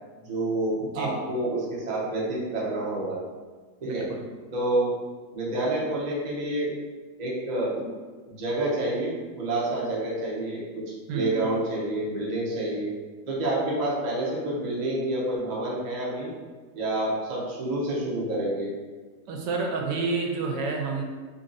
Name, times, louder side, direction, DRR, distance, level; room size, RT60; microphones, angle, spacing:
voice 1, 0.1-3.2 3.8-4.0 4.5-4.9 5.3-6.7 7.2-7.8 8.3-10.8 11.1-12.9 13.3-16.3 16.7-18.7, right 1 dB, 60° right, -5 dB, 0.4 m, -28 dB
voice 2, 0.8-1.2 3.8-4.2 11.1-11.5 19.3-21.0, right 4 dB, 75° right, 1 dB, 1.2 m, -29 dB
3.0 x 2.6 x 3.8 m, 1.4 s
omnidirectional pair, 2.0 m